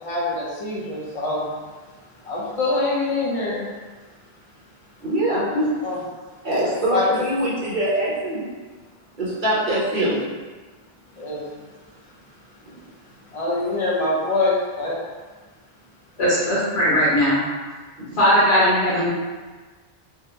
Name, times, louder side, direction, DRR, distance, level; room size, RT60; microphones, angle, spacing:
voice 1, 0.0-1.4 2.2-3.7 5.8-6.0 6.5-7.2 11.2-11.5 13.3-15.0 16.2-16.4, left 2 dB, 35° left, -6 dB, 0.7 m, -25 dB
voice 2, 5.0-5.9 6.4-8.5 9.2-10.2 12.6-12.8 18.0-18.2, right 1 dB, 50° right, -8 dB, 1.0 m, -23 dB
voice 3, 16.2-17.4 18.2-19.1, equal, 85° left, -9 dB, 1.0 m, -18 dB
3.5 x 2.1 x 2.8 m, 1.3 s
omnidirectional pair, 1.1 m